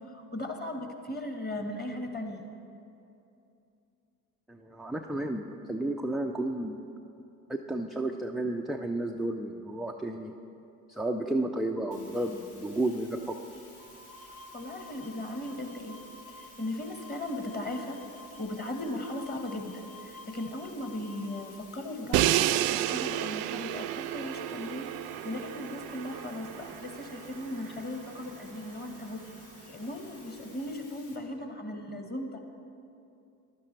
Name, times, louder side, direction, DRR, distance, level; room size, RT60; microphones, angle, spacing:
voice 1, 0.0-2.5 14.5-16.0 16.4-18.0 18.4-22.3 22.7-24.9 25.2-32.4, left 1 dB, 20° left, 4 dB, 1.4 m, -37 dB
voice 2, 4.5-6.8 7.5-10.3 10.9-13.4, right 1 dB, ahead, 1 dB, 0.4 m, -32 dB
sound 1, 11.9-31.2, left 3 dB, 75° left, 1.8 m, -55 dB
sound 2, 13.8-21.5, left 1 dB, 45° left, 2.2 m, -51 dB
Crash cymbal, 22.1-28.1, right 14 dB, 60° right, 0.5 m, -31 dB
15.5 x 11.5 x 3.3 m, 2.7 s
figure-of-eight pair, 55°, 46 cm